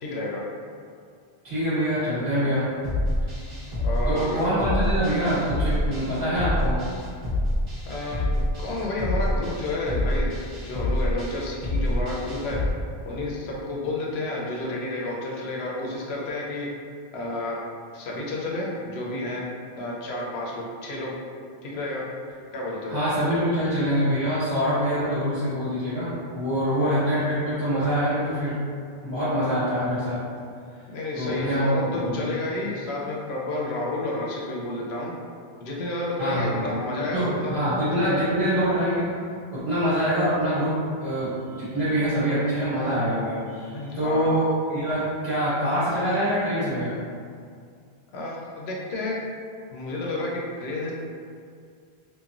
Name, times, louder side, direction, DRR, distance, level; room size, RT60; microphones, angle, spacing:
voice 1, 0.0-0.4 3.8-4.7 7.8-12.6 13.1-16.7 17.1-17.6 17.9-19.4 19.7-21.1 21.6-22.0 22.5-22.9 30.9-35.1 35.6-37.5 37.9-38.2 43.7-44.4 48.1-49.2 49.7-50.9, left 2 dB, 85° left, -3 dB, 0.8 m, -30 dB
voice 2, 1.4-2.7 4.1-6.8 22.9-28.6 29.0-30.2 31.1-32.2 36.2-39.1 39.5-46.9, equal, 80° right, -13 dB, 1.2 m, -25 dB
sound 1, 2.8-12.7, left 1 dB, 55° right, 1.0 m, -27 dB
3.0 x 2.1 x 2.4 m, 2.3 s
omnidirectional pair, 1.0 m